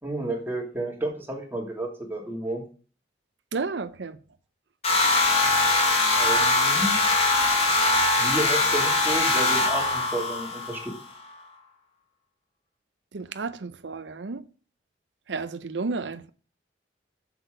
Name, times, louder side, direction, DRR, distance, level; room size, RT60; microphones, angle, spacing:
voice 1, 0.0-2.6 6.1-7.0 8.2-10.9, right 1 dB, 10° right, 2.8 m, -31 dB
voice 2, 3.5-4.2 13.1-14.5 15.3-16.3, right 4 dB, 90° right, 0.6 m, -32 dB
sound 1, 4.8-11.0, left 2 dB, 35° left, 2.9 m, -22 dB
7.5 x 7.0 x 6.5 m
head